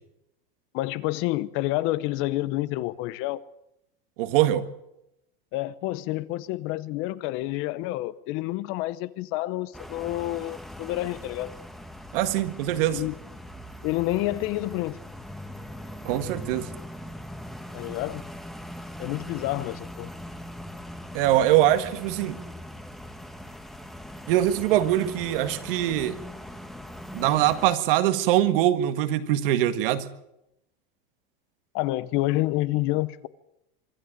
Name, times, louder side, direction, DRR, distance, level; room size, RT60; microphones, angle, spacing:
voice 1, 0.7-3.4 5.5-11.5 12.9-13.1 13.8-15.0 17.7-18.2 19.0-20.1 31.7-33.3, left 17 dB, 45° left, 17 dB, 0.8 m, -28 dB
voice 2, 4.2-4.7 12.1-13.0 16.1-16.7 21.1-22.4 24.3-26.2 27.1-30.1, right 12 dB, 70° right, 10 dB, 1.8 m, -23 dB
sound 1, 9.7-27.7, equal, ahead, 1.3 m, -41 dB
24.5 x 12.5 x 9.0 m, 0.85 s
supercardioid pair, 155°, 29 cm